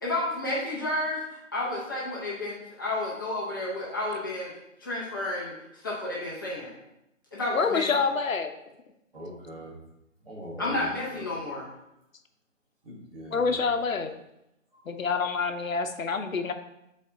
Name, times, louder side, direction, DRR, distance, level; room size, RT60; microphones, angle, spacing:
voice 1, 0.0-4.5 4.8-5.5 5.8-6.7 7.3-8.1 10.6-11.7, left 1 dB, 15° left, -7 dB, 0.8 m, -31 dB
voice 2, 7.5-8.6 13.3-14.1 14.9-16.5, left 5 dB, 80° left, 7 dB, 0.8 m, -27 dB
voice 3, 9.1-9.7 10.2-11.3 12.8-13.6 14.7-14.9, equal, 45° right, -3 dB, 1.8 m, -42 dB
6.4 x 4.1 x 3.8 m, 0.85 s
figure-of-eight pair, 160°, 39 cm